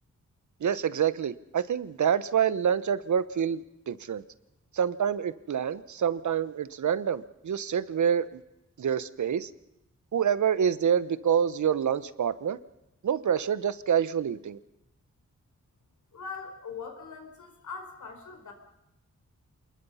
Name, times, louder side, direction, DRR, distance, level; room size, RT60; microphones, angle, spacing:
voice 1, 0.6-4.2 4.7-8.4 8.8-9.5 10.1-12.6 13.0-14.6, right 8 dB, 75° right, 16 dB, 1.0 m, -27 dB
voice 2, 16.1-18.5, left 5 dB, 75° left, 4 dB, 4.6 m, -41 dB
27.5 x 20.5 x 5.6 m, 0.88 s
wide cardioid pair, 120°, 30 cm